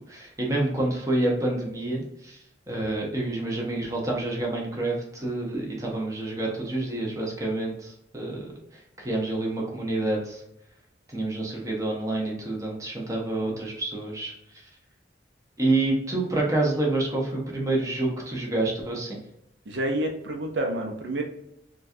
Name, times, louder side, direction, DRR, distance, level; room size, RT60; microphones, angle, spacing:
voice 1, 0.1-2.4 2.7-8.5 8.7-10.4 11.1-14.3 15.6-19.2, right 2 dB, 20° right, -2 dB, 0.8 m, -28 dB
voice 2, 19.7-21.2, right 1 dB, 80° right, 2 dB, 0.6 m, -28 dB
3.9 x 2.3 x 2.6 m, 0.81 s
head